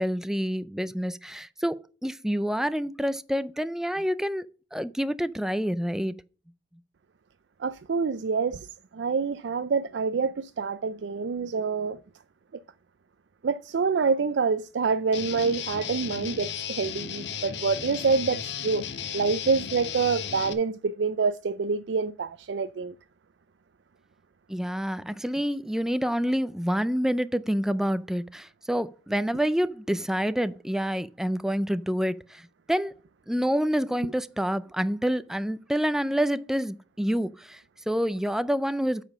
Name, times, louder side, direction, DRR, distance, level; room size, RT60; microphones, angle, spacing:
voice 1, 0.0-4.5 4.7-6.1 24.5-32.9 33.3-39.0, equal, 5° right, 0.4 m, -27 dB
voice 2, 7.6-12.0 13.4-18.9 19.1-22.9, right 5 dB, 85° right, 0.4 m, -27 dB
Guitar, 15.1-20.5, left 7 dB, 80° left, 1.0 m, -35 dB
8.7 x 5.0 x 5.5 m
head